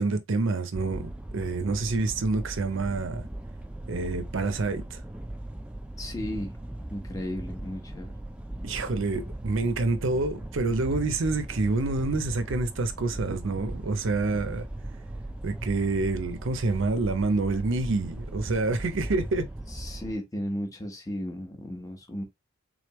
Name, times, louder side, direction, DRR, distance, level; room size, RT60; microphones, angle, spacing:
voice 1, 0.0-3.3 3.9-5.0 8.6-14.7 15.4-19.5, right 3 dB, 60° right, 0.5 m, -27 dB
sound 1, 0.7-20.1, right 1 dB, 5° right, 0.3 m, -38 dB
voice 2, 6.0-6.6 6.9-8.2 19.7-22.2, equal, 15° left, 1.0 m, -35 dB
3.7 x 3.4 x 3.1 m
head